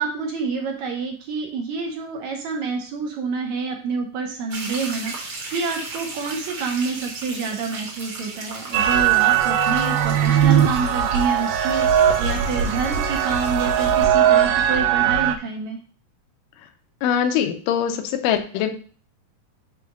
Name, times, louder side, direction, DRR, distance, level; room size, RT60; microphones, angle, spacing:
voice 1, 0.0-15.8, right 5 dB, 70° right, 2 dB, 1.8 m, -28 dB
sound 1, 4.5-14.0, right 3 dB, 50° right, 1.8 m, -36 dB
sound 2, 8.7-15.4, right 9 dB, 85° right, 1.7 m, -19 dB
voice 2, 17.0-18.7, left 8 dB, 75° left, 7 dB, 2.2 m, -22 dB
6.3 x 3.3 x 5.8 m, 0.41 s
omnidirectional pair, 4.2 m